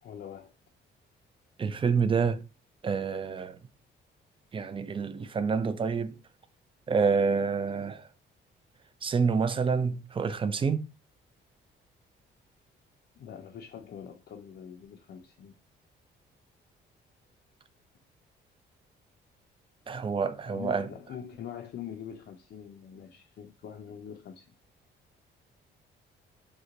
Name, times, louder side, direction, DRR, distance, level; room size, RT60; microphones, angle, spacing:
voice 1, 0.0-0.5 13.2-15.6 20.5-24.5, left 8 dB, 60° left, 0.5 m, -43 dB
voice 2, 1.6-2.4 2.8-3.6 4.5-6.1 6.9-8.0 9.0-10.8 19.9-20.9, right 5 dB, 25° right, 0.4 m, -27 dB
2.9 x 2.1 x 3.7 m
cardioid pair, 90°, 20 cm